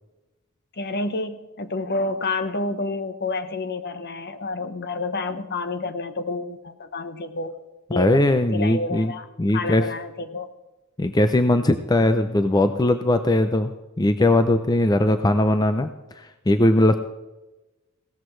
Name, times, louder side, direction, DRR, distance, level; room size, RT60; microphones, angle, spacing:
voice 1, 0.7-7.5 7.9-8.3 8.5-9.3 9.5-10.5, left 3 dB, 50° left, 10 dB, 1.0 m, -29 dB
voice 2, 8.0-9.1 9.4-9.8 11.0-15.9 16.2-17.0, left 1 dB, 20° left, 9 dB, 0.5 m, -20 dB
17.0 x 14.0 x 3.2 m, 1.1 s
head